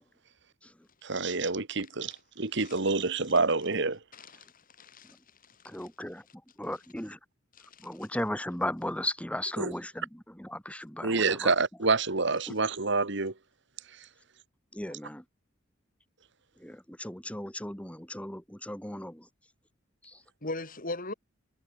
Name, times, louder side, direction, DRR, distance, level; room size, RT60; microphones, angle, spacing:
voice 1, 1.0-4.0 9.6-9.7 11.0-13.3, right 3 dB, 65° right, 1.9 m, -27 dB
voice 2, 4.1-4.5 4.8-5.2 7.6-7.9 20.4-21.1, left 2 dB, 45° left, 4.8 m, -38 dB
voice 3, 5.7-6.2 6.6-7.2 7.8-11.6 14.7-15.2 16.6-19.3 20.0-20.2, left 1 dB, 5° left, 3.5 m, -36 dB
head